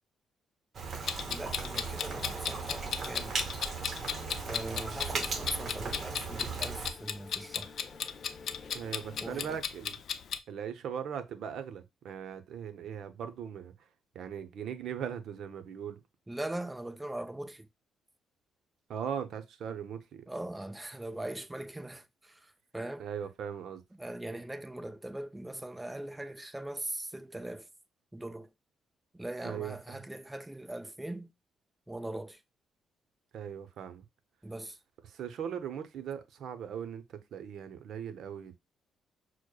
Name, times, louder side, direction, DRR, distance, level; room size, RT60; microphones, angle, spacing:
Rain, 0.7-6.9, right 5 dB, 45° right, 0.9 m, -37 dB
Clock, 1.1-10.4, left 7 dB, 65° left, 0.4 m, -36 dB
voice 1, 1.3-3.4 4.4-7.7 9.2-9.6 16.3-17.7 20.3-23.1 24.0-27.7 28.1-28.5 29.1-31.3 31.9-32.4 34.4-34.8, right 1 dB, 10° right, 0.5 m, -40 dB
sound 1, 1.6-9.5, left 4 dB, 30° left, 0.9 m, -51 dB
voice 2, 8.7-10.0 10.5-13.9 14.1-16.0 18.9-20.2 23.0-23.8 29.4-30.0 33.3-34.1 35.1-38.6, right 8 dB, 70° right, 0.6 m, -39 dB
6.2 x 2.1 x 2.2 m
cardioid pair, 90°, 0 cm